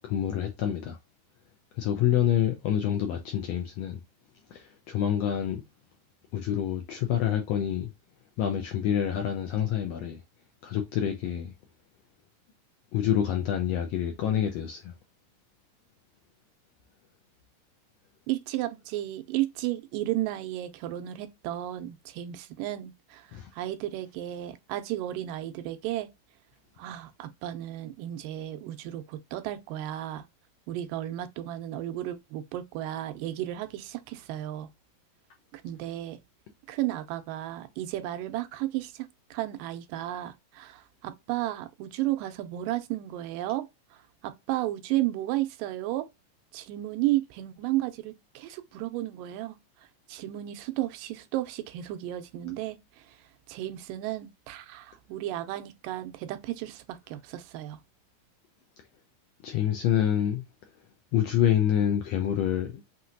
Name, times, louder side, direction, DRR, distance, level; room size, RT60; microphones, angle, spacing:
voice 1, 0.0-1.0 1.7-4.0 4.5-5.6 6.3-7.9 8.4-10.2 10.6-11.5 12.9-14.9 23.3-23.5 59.4-60.4 61.1-62.8, left 10 dB, 85° left, 1.4 m, -27 dB
voice 2, 18.3-23.3 23.5-26.1 26.8-30.2 30.7-34.7 35.5-36.2 36.7-43.7 43.9-46.1 46.5-49.6 50.1-53.2 53.5-57.8, right 15 dB, 90° right, 2.3 m, -33 dB
5.9 x 2.8 x 2.5 m
omnidirectional pair, 3.8 m